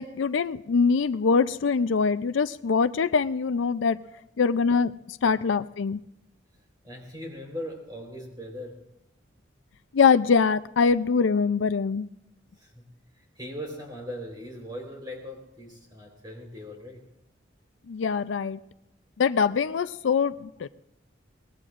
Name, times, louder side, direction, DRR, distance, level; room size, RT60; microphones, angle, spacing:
voice 1, 0.0-4.0 4.4-6.0 9.9-12.1 17.9-18.6 19.2-20.7, left 5 dB, 80° left, 14 dB, 0.4 m, -23 dB
voice 2, 6.8-8.8 12.6-12.8 13.2-17.1, equal, 20° right, 1 dB, 3.9 m, -39 dB
23.5 x 19.5 x 2.5 m, 0.85 s
head